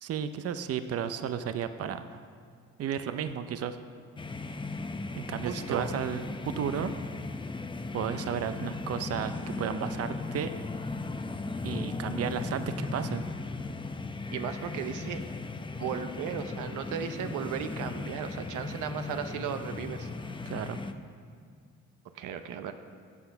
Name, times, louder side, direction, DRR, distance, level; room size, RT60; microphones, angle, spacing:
voice 1, 0.0-2.1 2.8-3.8 5.2-6.9 7.9-10.5 11.6-13.2 20.5-20.8, right 8 dB, 50° right, 10 dB, 0.7 m, -33 dB
sound 1, 4.2-20.9, left 3 dB, 15° left, 0.7 m, -37 dB
voice 2, 5.4-5.9 14.3-15.2 15.8-20.1 22.1-22.7, right 8 dB, 90° right, 8 dB, 0.8 m, -35 dB
13.0 x 8.1 x 5.8 m, 2.1 s
cardioid pair, 90°, 30 cm